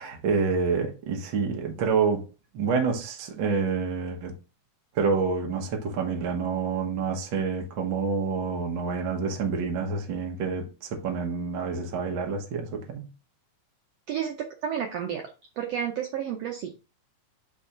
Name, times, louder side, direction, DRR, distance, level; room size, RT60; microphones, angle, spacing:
voice 1, 0.0-2.3 2.5-4.4 4.9-13.1, right 5 dB, 60° right, 1.2 m, -28 dB
voice 2, 14.1-15.2 15.6-16.7, right 9 dB, 90° right, 1.4 m, -31 dB
5.1 x 3.5 x 5.6 m
omnidirectional pair, 3.9 m